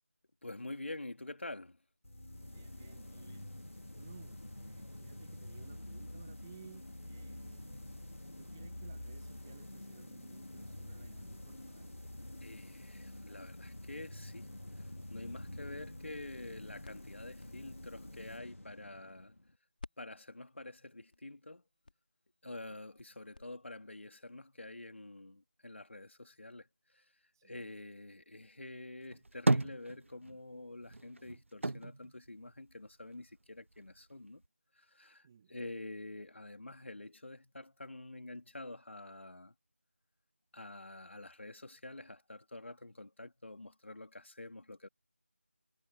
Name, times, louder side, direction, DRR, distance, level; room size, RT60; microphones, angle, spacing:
voice 1, 0.4-1.8 12.4-14.8 15.1-19.3 20.0-21.6 22.4-26.7 26.9-27.0 27.4-34.4 34.8-39.5 40.5-44.9, left 2 dB, 65° left, 3.3 m, -47 dB
sound 1, 2.0-19.6, left 1 dB, 85° left, 2.4 m, -48 dB
voice 2, 2.5-3.5 4.0-7.9 8.4-11.9 15.2-15.6 27.3-27.7 35.2-35.7, right 7 dB, 15° right, 2.2 m, -59 dB
sound 2, 17.0-19.5 19.8-23.4, left 3 dB, 45° left, 2.2 m, -57 dB
sound 3, 29.0-30.5 30.8-33.2 33.6-34.5, right 2 dB, 70° right, 0.8 m, -34 dB
figure-of-eight pair, 170°, 7 cm